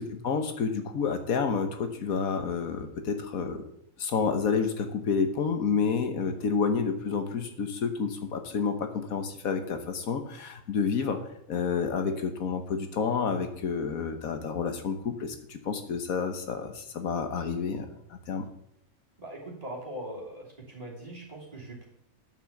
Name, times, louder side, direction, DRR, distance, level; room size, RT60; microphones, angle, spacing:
voice 1, 0.0-3.6 4.0-11.2 11.5-18.5, left 5 dB, 85° left, 7 dB, 1.6 m, -29 dB
voice 2, 19.2-21.9, right 1 dB, 25° right, -3 dB, 3.0 m, -41 dB
9.4 x 6.1 x 7.1 m, 0.76 s
omnidirectional pair, 1.4 m